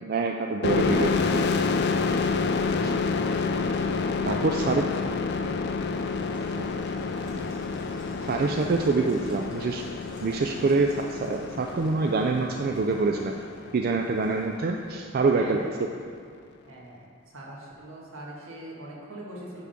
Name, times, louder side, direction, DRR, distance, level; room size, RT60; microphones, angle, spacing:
voice 1, 0.1-1.5 2.8-3.0 4.2-4.8 6.6-6.7 8.2-9.8 10.2-13.4 13.7-15.7, right 3 dB, 45° right, 2 dB, 0.3 m, -26 dB
sound 1, 0.6-14.1, left 4 dB, 55° left, 0.4 m, -28 dB
voice 2, 4.4-4.9 7.2-7.4 15.3-15.8 16.7-17.0 17.3-19.6, right 1 dB, 80° right, -4 dB, 1.6 m, -42 dB
sound 2, 5.5-15.9, right 1 dB, 25° right, 1.7 m, -50 dB
9.7 x 3.6 x 5.8 m, 2.2 s
head